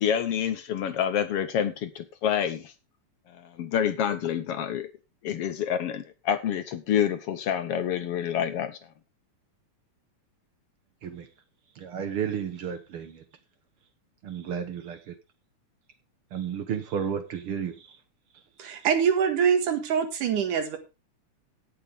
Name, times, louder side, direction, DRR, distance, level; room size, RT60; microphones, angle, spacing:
voice 1, 0.0-2.7 3.3-4.9 5.2-8.8, left 9 dB, 65° left, 1.6 m, -28 dB
voice 2, 11.8-13.2 14.2-15.1 16.3-18.0, right 7 dB, 55° right, 1.7 m, -32 dB
voice 3, 18.6-20.8, right 7 dB, 85° right, 3.3 m, -24 dB
17.5 x 7.2 x 3.6 m
omnidirectional pair, 3.5 m